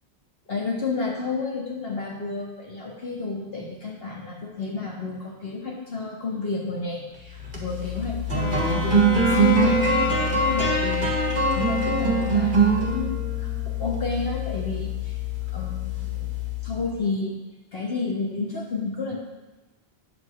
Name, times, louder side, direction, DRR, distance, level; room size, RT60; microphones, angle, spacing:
voice 1, 0.5-9.8 10.1-11.1 11.5-15.2 15.5-16.3 16.6-17.4 17.7-19.2, left 3 dB, 60° left, -4 dB, 2.0 m, -31 dB
sound 1, 7.3-16.9, right 1 dB, 50° right, 1.8 m, -24 dB
Bowed string instrument, 8.3-12.8, left 2 dB, 45° left, 0.7 m, -29 dB
9.2 x 4.7 x 6.6 m, 1.1 s
omnidirectional pair, 1.1 m